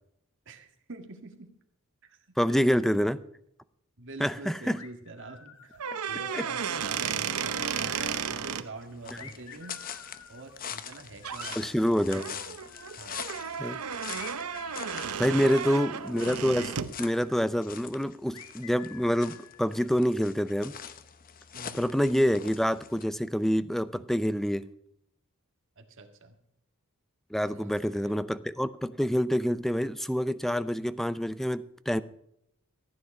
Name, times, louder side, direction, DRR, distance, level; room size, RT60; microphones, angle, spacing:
voice 1, 0.5-1.5 2.0-2.2 2.5-3.1 4.0-5.7 6.1-9.8 10.3-12.6 13.0-13.2 15.3-15.9 21.5-21.9 23.9-24.1 25.8-26.4 27.4-28.2, right 2 dB, 60° right, 4 dB, 1.9 m, -45 dB
voice 2, 2.4-3.2 4.2-4.8 6.3-6.4 8.0-8.1 11.6-12.3 13.6-13.8 15.2-20.7 21.7-24.7 27.3-32.0, equal, ahead, 14 dB, 0.5 m, -27 dB
sound 1, 4.7-6.0 6.3-8.4 9.1-12.3 12.6-13.3 14.1-17.5 18.3-20.1, left 6 dB, 80° left, 1.6 m, -50 dB
sound 2, 5.7-8.6 10.8-10.9 11.2-11.6 12.1-17.0, right 7 dB, 80° right, 0.8 m, -33 dB
sound 3, 8.8-23.0, left 8 dB, 40° left, 0.8 m, -44 dB
15.0 x 9.8 x 5.4 m, 0.75 s
head